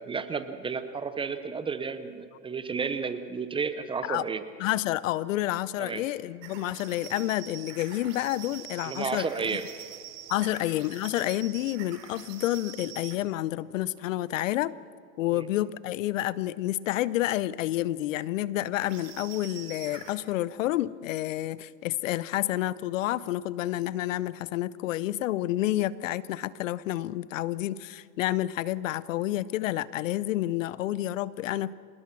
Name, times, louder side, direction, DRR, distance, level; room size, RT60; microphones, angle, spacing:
voice 1, 0.0-4.4 5.8-6.0 8.8-9.6 15.3-15.5, right 5 dB, 10° right, 11 dB, 0.7 m, -32 dB
voice 2, 4.6-9.3 10.3-14.7 15.2-31.7, left 15 dB, 50° left, 20 dB, 0.6 m, -29 dB
sound 1, 6.4-13.2 18.8-20.2, right 11 dB, 50° right, 3.2 m, -45 dB
26.0 x 19.5 x 6.0 m, 2.3 s
hypercardioid pair, 120°, 49 cm